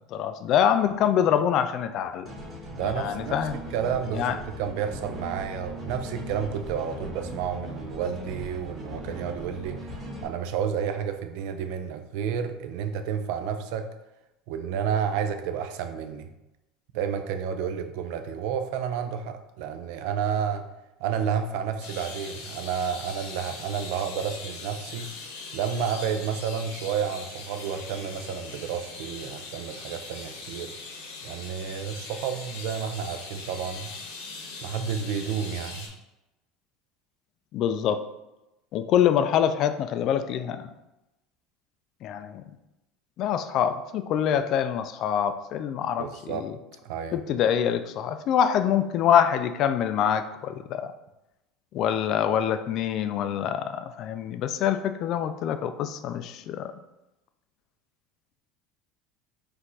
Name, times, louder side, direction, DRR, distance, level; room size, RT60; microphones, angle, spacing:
voice 1, 0.1-2.3 2.8-3.6 4.1-4.4 37.5-38.0 38.7-40.7 42.0-42.4 43.2-46.6 47.1-50.9 51.7-56.7, left 9 dB, 50° left, 10 dB, 0.3 m, -25 dB
sound 1, 2.3-10.3, equal, 20° right, 1.3 m, -39 dB
voice 2, 2.7-3.4 3.7-9.9 10.2-13.9 14.5-16.3 16.9-20.6 21.0-25.1 25.5-30.7 31.2-33.9 34.6-35.9 46.0-46.5 46.8-47.2, right 7 dB, 70° right, 7 dB, 0.4 m, -30 dB
sound 2, 21.8-35.9, left 4 dB, 85° left, 1.0 m, -41 dB
4.4 x 2.5 x 4.0 m, 0.95 s
supercardioid pair, 140°, 0 cm